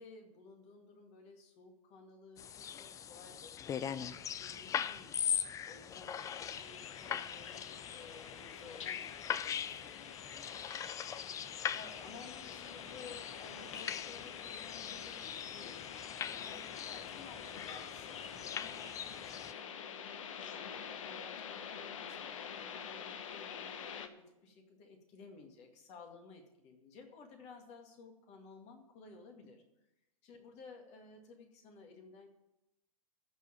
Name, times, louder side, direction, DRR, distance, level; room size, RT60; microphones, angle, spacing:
voice 1, 0.0-5.2 5.7-10.6 11.4-29.6 30.2-32.3, left 4 dB, 35° left, 3 dB, 2.2 m, -56 dB
sound 1, 2.4-19.5, left 9 dB, 20° left, 0.4 m, -41 dB
sound 2, 6.2-24.1, left 7 dB, 60° left, 1.0 m, -47 dB
14.0 x 4.7 x 8.6 m, 0.91 s
figure-of-eight pair, 100°, 18 cm